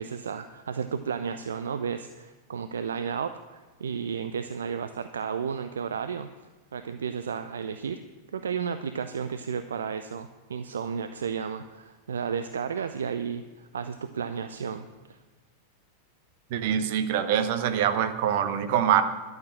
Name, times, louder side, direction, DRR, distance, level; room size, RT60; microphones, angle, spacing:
voice 1, 0.0-6.3 6.7-8.0 8.3-15.2, right 6 dB, 65° right, 10 dB, 0.5 m, -33 dB
voice 2, 16.5-19.0, right 9 dB, 50° right, 9 dB, 1.0 m, -24 dB
11.5 x 6.6 x 8.6 m, 1.3 s
figure-of-eight pair, 90°, 0 cm